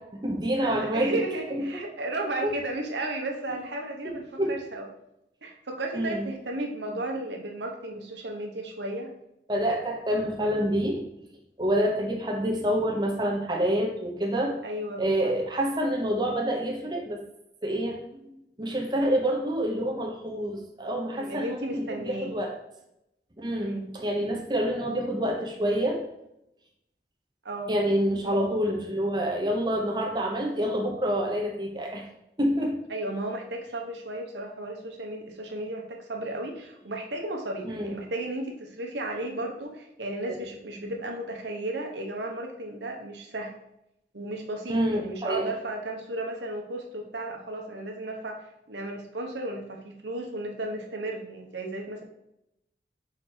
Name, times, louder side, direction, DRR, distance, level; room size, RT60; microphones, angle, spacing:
voice 1, 0.0-1.2 2.4-2.5 4.4-4.5 5.9-6.3 9.5-11.0 11.6-14.5 15.0-17.2 17.6-18.3 18.6-22.5 23.4-26.0 27.7-32.0 32.4-32.8 37.6-37.9 40.3-40.4 44.7-45.5, equal, 25° right, -1 dB, 1.0 m, -27 dB
voice 2, 0.6-4.9 5.4-9.1 14.6-15.3 21.1-22.4 23.6-23.9 27.4-27.7 28.2-28.6 32.9-43.5 44.1-52.0, right 1 dB, 85° right, 1 dB, 1.1 m, -34 dB
5.2 x 4.8 x 4.4 m, 0.83 s
head